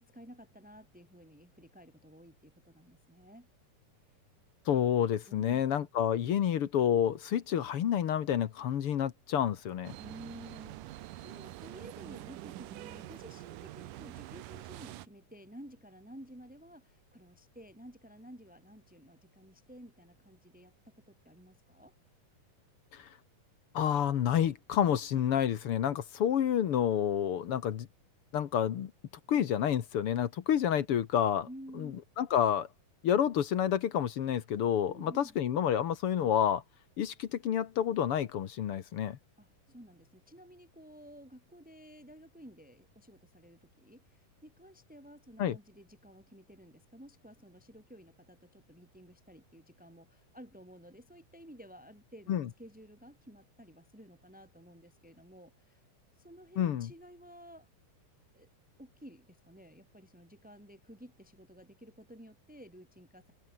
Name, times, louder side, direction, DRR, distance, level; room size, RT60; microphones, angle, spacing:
voice 1, 0.0-3.5 5.3-5.6 10.0-21.9 31.5-32.0 34.9-35.3 39.4-55.8 56.1-57.7 58.3-58.5 58.8-63.3, equal, ahead, 4.5 m, -53 dB
voice 2, 4.7-9.9 22.9-23.1 23.7-27.9 28.3-28.9 29.3-31.5 31.8-32.7 33.0-36.6 37.0-39.2 45.4-45.6 52.3-52.5 56.6-56.9, left 9 dB, 60° left, 1.6 m, -29 dB
sound 1, 9.8-15.1, right 15 dB, 80° right, 2.5 m, -46 dB
omnidirectional pair, 3.9 m